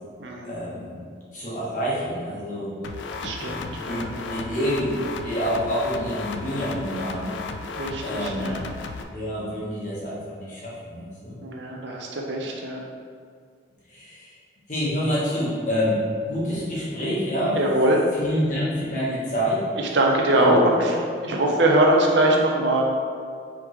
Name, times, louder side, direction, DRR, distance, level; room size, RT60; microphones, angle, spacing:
voice 1, 0.5-1.0 1.3-2.7 3.3-7.3 8.0-8.5 9.1-11.4 13.9-14.4 14.7-17.6 18.1-19.7 20.3-20.5, equal, 40° left, -8 dB, 1.2 m, -27 dB
sound 1, 2.8-9.0, left 4 dB, 75° left, 0.3 m, -34 dB
voice 2, 3.2-4.1 7.8-8.6 11.4-12.8 17.5-18.0 19.9-21.0 21.2-22.8, right 1 dB, 70° right, 0 dB, 0.6 m, -22 dB
4.8 x 3.5 x 3.1 m, 2.1 s
head